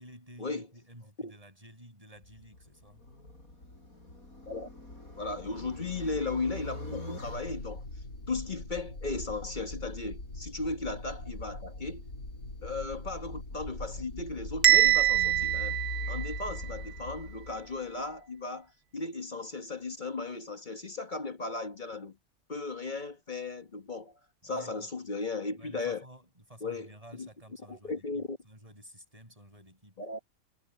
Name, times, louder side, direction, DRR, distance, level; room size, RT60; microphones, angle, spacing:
voice 1, 0.0-3.0 24.4-24.9 25.6-29.9, equal, 25° right, 6.4 m, -52 dB
sound 1, 2.2-18.2, left 2 dB, 80° left, 7.7 m, -42 dB
voice 2, 5.1-7.8 8.3-12.1 12.6-15.8 16.1-22.2 22.5-24.1 24.4-26.0 26.6-27.3 27.7-28.4 30.0-30.2, left 3 dB, 35° left, 1.4 m, -36 dB
Bell, 14.6-16.7, right 12 dB, 60° right, 1.1 m, -24 dB
omnidirectional pair, 1.5 m